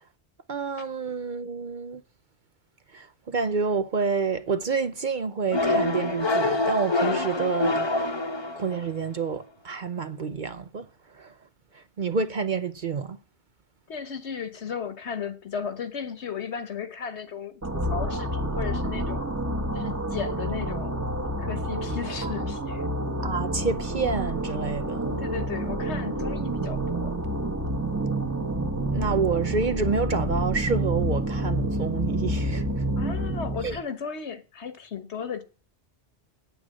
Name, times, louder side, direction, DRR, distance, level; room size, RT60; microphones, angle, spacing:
voice 1, 0.5-2.0 2.9-7.8 8.6-10.9 11.2-11.3 12.0-13.2 22.2-22.3 23.2-25.2 26.6-26.7 28.9-32.6 33.6-33.8, right 5 dB, 50° right, 0.7 m, -28 dB
sound 1, 5.5-9.0, left 2 dB, 25° left, 0.9 m, -26 dB
voice 2, 13.9-19.2 19.7-21.0 21.4-22.9 25.2-27.2 33.0-35.4, left 7 dB, 70° left, 1.5 m, -35 dB
sound 2, 17.6-33.8, right 1 dB, 15° right, 1.1 m, -28 dB
9.1 x 9.0 x 7.5 m
omnidirectional pair, 1.2 m